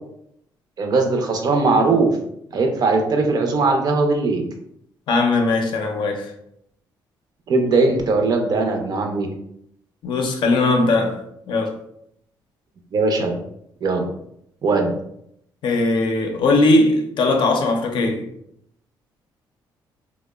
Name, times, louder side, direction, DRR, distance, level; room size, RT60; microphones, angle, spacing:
voice 1, 0.8-2.2 2.5-4.5 7.5-9.3 12.9-13.4 13.8-14.1 14.6-15.0, right 3 dB, 50° right, 0.5 m, -19 dB
voice 2, 5.1-6.3 10.0-11.8 15.6-18.3, left 2 dB, 65° left, 0.5 m, -19 dB
2.7 x 2.0 x 2.2 m
cardioid pair, 95°, 9 cm